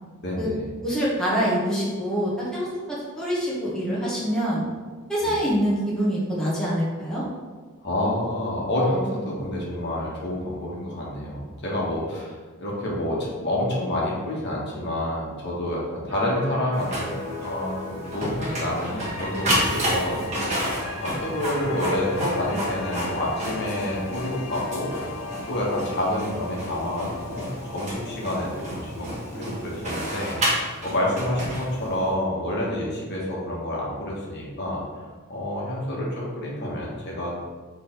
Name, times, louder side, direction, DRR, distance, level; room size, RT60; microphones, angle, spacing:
voice 1, 0.2-0.6 5.2-5.3 7.8-12.3 12.6-17.1 17.4-20.6 21.0-24.9 25.5-27.5 27.7-34.8 35.3-37.4, left 1 dB, 50° left, -4 dB, 1.3 m, -28 dB
voice 2, 0.8-4.6 5.1-7.2, equal, 5° left, -8 dB, 1.2 m, -25 dB
sound 1, 16.1-26.1 26.5-26.6, equal, 55° right, 1.5 m, -40 dB
Printer, 16.7-32.1, equal, 30° right, 1.5 m, -31 dB
sound 2, 18.7-29.7, left 5 dB, 85° left, 0.4 m, -39 dB
6.4 x 3.4 x 4.5 m, 1.4 s
head